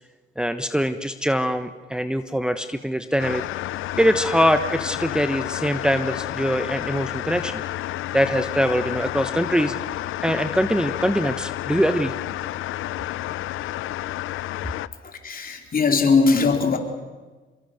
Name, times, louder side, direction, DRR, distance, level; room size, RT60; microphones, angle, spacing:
voice 1, 0.4-3.4 4.0-7.6 8.1-9.8 10.2-12.1, equal, 5° right, 8 dB, 1.1 m, -23 dB
sound 1, 3.2-14.9, left 15 dB, 85° left, 0.7 m, -30 dB
voice 2, 15.0-16.8, left 4 dB, 45° left, 4 dB, 3.9 m, -20 dB
27.5 x 22.5 x 6.7 m, 1.3 s
cardioid pair, 90°, 20 cm